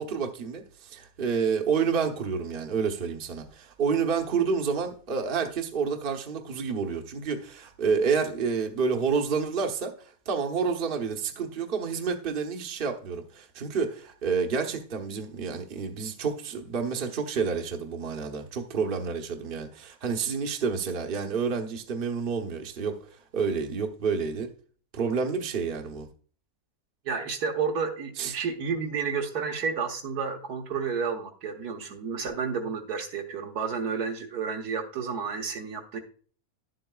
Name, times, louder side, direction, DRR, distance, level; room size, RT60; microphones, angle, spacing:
voice 1, 0.0-24.5 24.9-26.1 28.2-28.4, right 5 dB, 40° right, 1.1 m, -29 dB
voice 2, 27.1-36.0, right 5 dB, 85° right, 1.8 m, -31 dB
11.5 x 7.7 x 2.3 m
omnidirectional pair, 1.6 m